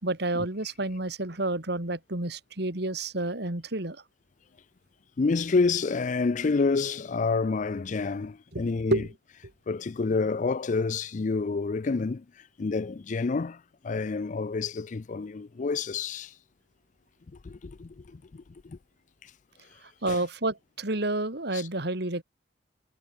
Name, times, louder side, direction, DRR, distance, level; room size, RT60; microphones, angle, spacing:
voice 1, 0.0-4.0 8.5-8.7 8.9-9.1 20.0-22.2, right 2 dB, 65° right, 2.7 m, -30 dB
voice 2, 5.2-9.0 9.7-12.2 12.6-16.3 17.4-18.8 20.1-20.2 21.5-21.7, left 4 dB, 45° left, 0.4 m, -28 dB
head